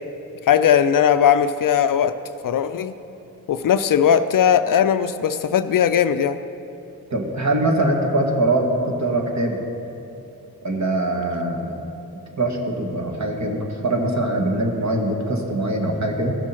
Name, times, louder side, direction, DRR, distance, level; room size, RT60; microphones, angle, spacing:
voice 1, 0.4-2.1 2.4-2.9 3.5-6.4, left 8 dB, 60° left, 11 dB, 0.5 m, -18 dB
voice 2, 7.1-9.6 10.6-11.8 12.4-16.4, right 1 dB, 45° right, 1 dB, 1.6 m, -22 dB
15.0 x 6.2 x 4.4 m, 2.7 s
cardioid pair, 60°, 38 cm